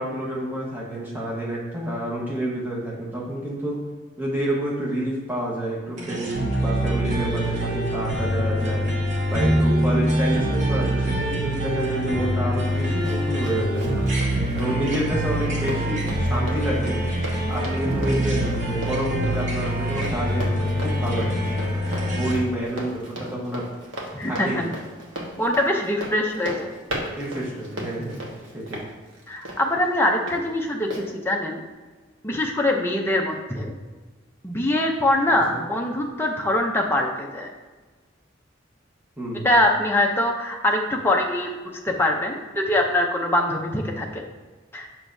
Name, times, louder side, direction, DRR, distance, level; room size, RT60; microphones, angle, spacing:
voice 1, 0.0-3.8 4.2-8.8 9.3-13.9 14.5-16.9 17.5-23.6 24.2-24.7 27.2-28.8 35.3-35.6 39.2-39.5, right 1 dB, 10° right, -5 dB, 1.1 m, -29 dB
sound 1, 6.0-22.3, equal, 35° right, 1.0 m, -24 dB
Run, 12.6-30.4 30.9-31.0, equal, 75° right, 1.3 m, -37 dB
voice 2, 24.1-24.7 25.4-26.7 29.3-31.6 32.2-33.7 34.4-37.5 39.4-41.5 41.8-44.1 44.7-44.9, left 1 dB, 10° left, 0 dB, 0.5 m, -23 dB
6.6 x 6.1 x 2.6 m, 1.3 s
head